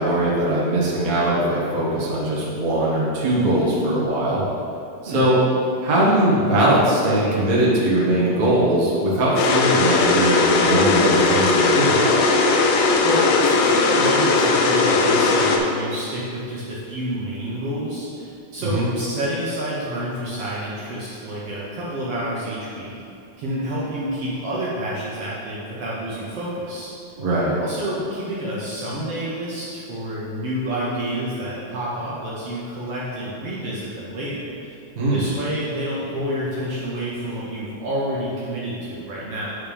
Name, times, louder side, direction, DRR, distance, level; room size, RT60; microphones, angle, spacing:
voice 1, 0.0-4.4 5.0-5.4 5.8-12.2 18.6-18.9 27.2-27.6 34.9-35.2, right 1 dB, 40° right, -6 dB, 1.4 m, -20 dB
sound 1, 9.4-15.6, left 3 dB, 80° left, 1.8 m, -18 dB
voice 2, 13.0-22.9 23.4-26.9 27.6-34.8 35.1-39.5, right 1 dB, 60° right, -7 dB, 1.8 m, -29 dB
9.4 x 5.8 x 3.5 m, 2.5 s
omnidirectional pair, 3.5 m